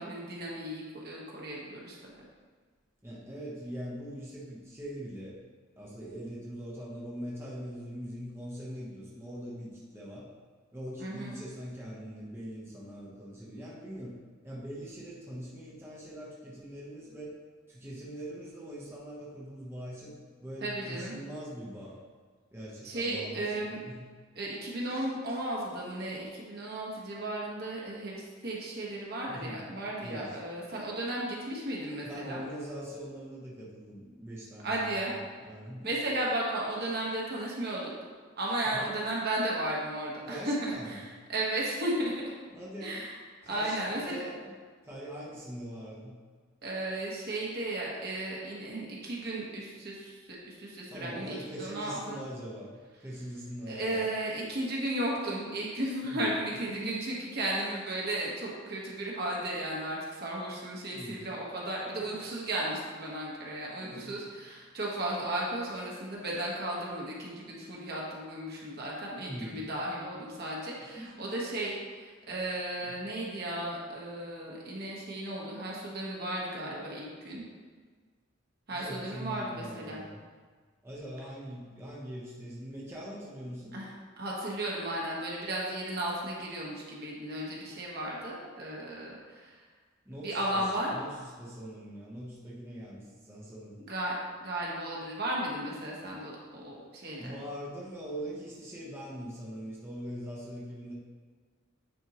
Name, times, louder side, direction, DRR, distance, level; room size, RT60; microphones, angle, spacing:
voice 1, 0.0-2.1 11.0-11.3 20.6-21.1 22.8-23.8 24.3-32.4 34.6-35.1 35.8-37.9 38.4-42.2 42.8-43.1 43.5-44.2 46.6-52.2 53.7-77.4 78.7-80.0 83.7-83.9 84.2-89.5 90.2-90.9 93.8-97.4, right 1 dB, 50° right, -4 dB, 1.4 m, -35 dB
voice 2, 3.0-5.4 5.8-10.3 10.7-14.1 14.4-17.3 17.7-22.0 22.5-24.1 29.3-29.6 30.0-30.4 32.0-35.1 35.4-35.9 38.6-38.9 40.3-41.0 42.5-43.1 43.4-44.5 44.8-46.1 50.9-52.7 53.0-54.1 56.0-56.3 56.6-57.0 60.9-61.3 61.9-62.2 63.8-64.2 69.2-69.7 70.8-71.3 72.8-73.1 78.7-80.2 80.8-83.7 90.1-93.8 97.1-100.9, equal, 15° right, -6 dB, 1.0 m, -42 dB
9.1 x 4.4 x 3.0 m, 1.5 s
head